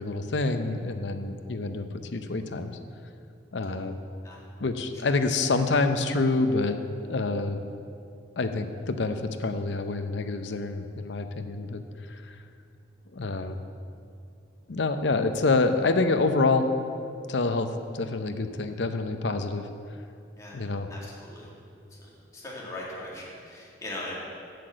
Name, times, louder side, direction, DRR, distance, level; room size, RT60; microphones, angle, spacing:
voice 1, 0.0-1.9 2.1-2.7 3.5-3.9 4.6-6.8 7.1-7.6 8.4-12.4 13.1-13.6 14.7-16.7 17.3-19.7 20.5-20.9, left 3 dB, 75° left, 8 dB, 0.7 m, -27 dB
voice 2, 20.9-21.5 22.0-24.1, left 1 dB, 20° left, -5 dB, 2.1 m, -40 dB
7.7 x 6.8 x 7.7 m, 2.4 s
head